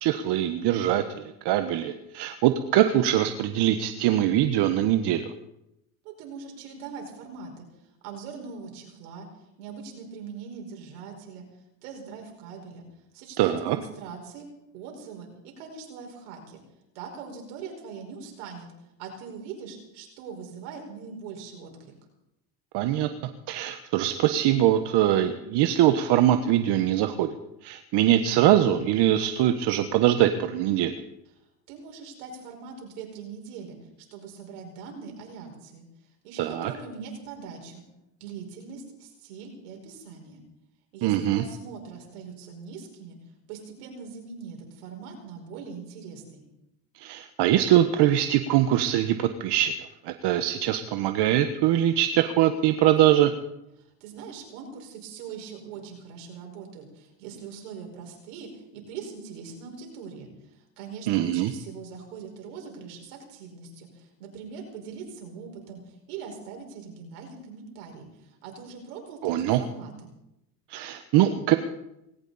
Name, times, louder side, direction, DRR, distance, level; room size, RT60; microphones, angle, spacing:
voice 1, 0.0-5.3 13.4-13.8 22.7-23.1 23.5-27.3 27.6-30.9 36.4-36.7 41.0-41.4 47.0-49.7 50.0-53.3 61.1-61.5 69.2-69.6 70.7-71.5, right 12 dB, 65° right, 8 dB, 1.2 m, -22 dB
voice 2, 6.0-7.7 8.0-9.3 9.6-11.4 11.8-12.9 13.1-14.5 14.7-16.6 17.0-18.7 19.0-21.9 31.7-33.8 34.1-35.8 36.2-37.8 38.2-40.4 40.9-43.2 43.5-46.5 53.8-70.1, right 6 dB, 85° right, 2 dB, 5.2 m, -41 dB
19.0 x 17.5 x 4.2 m, 0.87 s
supercardioid pair, 95°, 45 cm